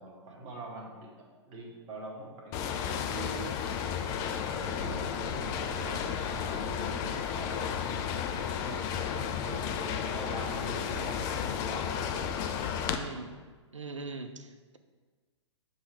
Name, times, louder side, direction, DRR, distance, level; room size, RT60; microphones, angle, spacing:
voice 1, 0.0-3.9 4.3-12.3, right 2 dB, 30° right, -1 dB, 1.2 m, -44 dB
sound 1, 2.5-13.0, left 8 dB, 20° left, 0.3 m, -33 dB
voice 2, 12.9-13.4 13.7-14.8, right 3 dB, 80° right, 8 dB, 0.6 m, -41 dB
6.9 x 3.1 x 5.4 m, 1.4 s
figure-of-eight pair, 115°, 16 cm